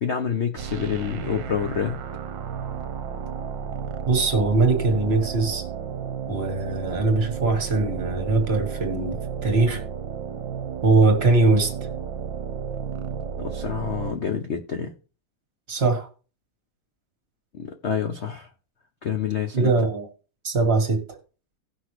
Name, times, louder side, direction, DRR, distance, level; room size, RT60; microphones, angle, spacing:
voice 1, 0.0-2.0 13.4-14.9 17.5-18.5 19.0-19.7, left 7 dB, 85° left, 0.6 m, -28 dB
sound 1, 0.6-14.1, right 7 dB, 65° right, 1.4 m, -33 dB
voice 2, 4.1-5.6 6.3-9.8 10.8-11.7 15.7-16.1 19.5-20.1 20.4-21.2, right 3 dB, 30° right, 1.7 m, -21 dB
17.5 x 6.0 x 3.2 m
omnidirectional pair, 2.3 m